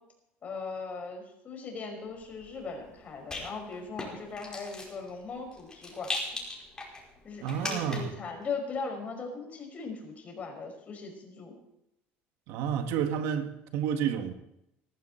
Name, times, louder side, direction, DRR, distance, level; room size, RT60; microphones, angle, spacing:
voice 1, 0.4-6.1 7.2-11.5, left 4 dB, 35° left, 5.4 m, -39 dB
Rattle, 2.1-8.2, left 2 dB, 15° left, 5.2 m, -40 dB
voice 2, 7.4-8.1 12.5-14.3, right 8 dB, 75° right, 1.7 m, -30 dB
20.0 x 13.5 x 4.4 m
cardioid pair, 130°, 5 cm